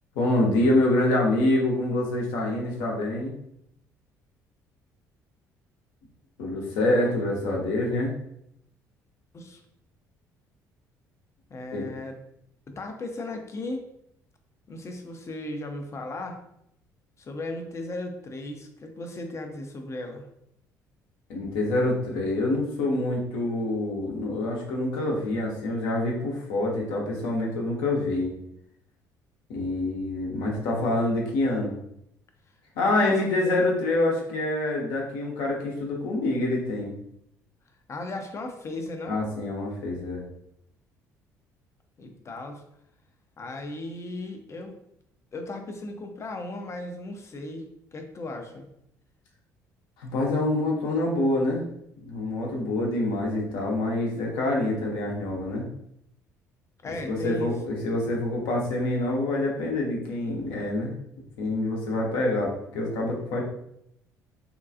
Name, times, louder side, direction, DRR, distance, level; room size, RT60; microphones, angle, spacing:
voice 1, 0.1-3.3 6.4-8.1 11.7-11.9 21.3-28.3 29.5-31.7 32.8-36.9 39.1-40.2 50.0-51.6 52.0-55.7 57.0-60.9 61.4-63.4, left 2 dB, 65° left, -1 dB, 0.8 m, -26 dB
voice 2, 11.5-12.2 12.7-13.8 14.7-16.4 17.2-20.2 32.9-33.2 37.9-39.2 42.0-42.6 43.4-44.8 45.3-48.6 56.8-57.5, left 2 dB, 30° left, 4 dB, 0.6 m, -36 dB
3.6 x 2.3 x 2.5 m, 0.76 s
figure-of-eight pair, 50°, 9 cm